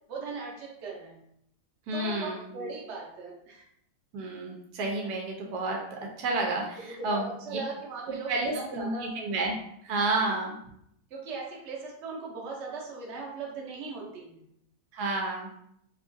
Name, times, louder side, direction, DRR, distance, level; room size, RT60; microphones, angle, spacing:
voice 1, 0.1-1.2 1.9-3.6 4.2-4.3 5.0-5.1 6.8-9.1 10.2-10.3 11.1-14.4, right 4 dB, 55° right, -2 dB, 0.9 m, -39 dB
voice 2, 1.9-2.5 4.1-7.6 8.3-9.5 9.8-10.5 14.9-15.5, right 2 dB, 80° right, 0 dB, 1.2 m, -30 dB
2.9 x 2.4 x 2.5 m, 0.73 s
omnidirectional pair, 1.7 m